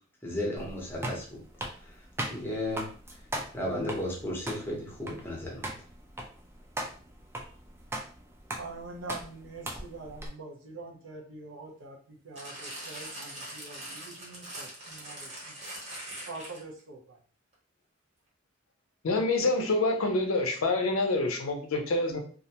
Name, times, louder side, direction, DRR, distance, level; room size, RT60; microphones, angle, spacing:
voice 1, 0.2-1.4 1.8-2.9 3.5-5.7, left 1 dB, 10° left, -3 dB, 0.7 m, -34 dB
sound 1, 0.6-10.3, right 1 dB, 10° right, 0.3 m, -39 dB
voice 2, 8.6-15.6 16.3-17.2, right 3 dB, 70° right, 1 dB, 0.6 m, -44 dB
sound 2, 12.4-16.8 17.5-17.6, right 1 dB, 35° right, 0.8 m, -42 dB
voice 3, 19.0-22.2, left 2 dB, 85° left, 4 dB, 0.5 m, -27 dB
2.4 x 2.1 x 2.8 m, 0.43 s
head